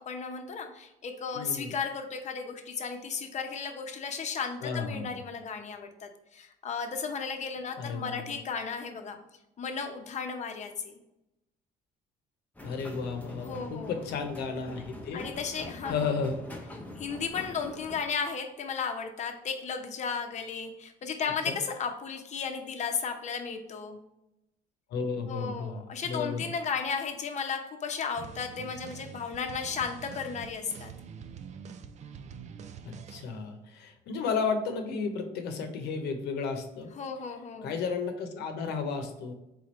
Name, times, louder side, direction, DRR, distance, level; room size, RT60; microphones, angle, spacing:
voice 1, 0.0-9.2 9.6-10.9 13.4-14.0 15.1-16.1 17.0-24.0 25.3-30.9 37.0-37.8, left 6 dB, 45° left, 5 dB, 0.8 m, -34 dB
voice 2, 1.3-1.7 4.6-5.2 7.8-8.4 12.6-15.2 15.9-16.4 21.5-21.6 24.9-26.5 32.8-36.9 37.6-39.3, left 5 dB, 75° left, 6 dB, 0.9 m, -33 dB
sound 1, 12.5-18.1, left 2 dB, 10° left, 0.8 m, -44 dB
sound 2, 28.2-33.3, right 7 dB, 45° right, 0.4 m, -45 dB
4.3 x 3.8 x 3.1 m, 0.92 s
cardioid pair, 110°, 17 cm